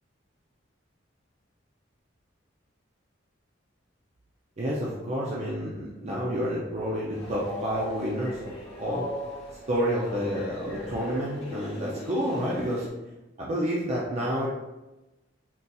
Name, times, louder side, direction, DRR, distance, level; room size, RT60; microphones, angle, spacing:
voice 1, 4.6-8.5 8.8-9.0 9.7-12.9 13.4-14.5, equal, 35° right, -5 dB, 0.4 m, -29 dB
Train, 7.1-12.9, left 1 dB, 35° left, 0.8 m, -38 dB
3.8 x 2.7 x 2.3 m, 1.0 s
head